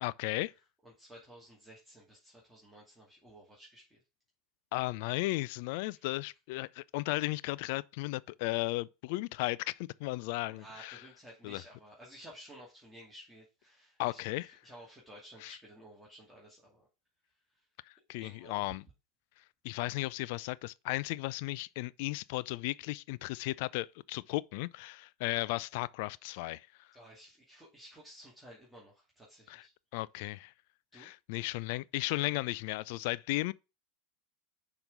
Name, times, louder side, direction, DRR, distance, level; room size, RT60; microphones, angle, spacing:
voice 1, 0.0-0.5 4.7-11.0 11.4-11.6 14.0-14.5 15.4-15.5 18.1-18.8 19.6-26.7 29.5-29.6 29.9-30.5 30.9-33.5, left 20 dB, 65° left, 0.3 m, -35 dB
voice 2, 0.8-4.0 10.5-16.9 17.5-17.6 18.1-18.7 26.9-29.7 30.9-31.1, right 1 dB, 10° right, 2.3 m, -54 dB
6.0 x 3.8 x 5.3 m
hypercardioid pair, 95°, 0 cm